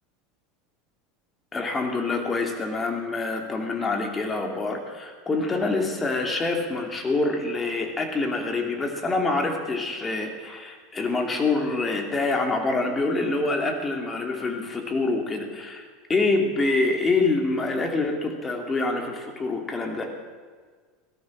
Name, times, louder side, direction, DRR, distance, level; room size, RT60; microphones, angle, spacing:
voice 1, 1.5-15.8 16.1-20.1, left 3 dB, 20° left, 3 dB, 2.6 m, -26 dB
17.0 x 13.0 x 6.3 m, 1.5 s
supercardioid pair, 130°, 0 cm